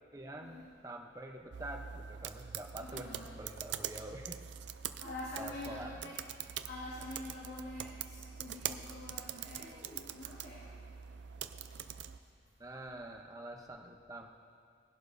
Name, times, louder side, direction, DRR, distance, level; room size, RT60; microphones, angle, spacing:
voice 1, 0.1-4.4 5.4-6.2 12.6-14.3, right 1 dB, 20° right, 2 dB, 0.8 m, -46 dB
sound 1, 1.5-12.2, right 9 dB, 85° right, 0.4 m, -44 dB
voice 2, 2.8-3.3 5.0-6.2 6.6-10.7, left 1 dB, 90° left, -7 dB, 2.1 m, -46 dB
19.0 x 11.5 x 2.7 m, 2.3 s
head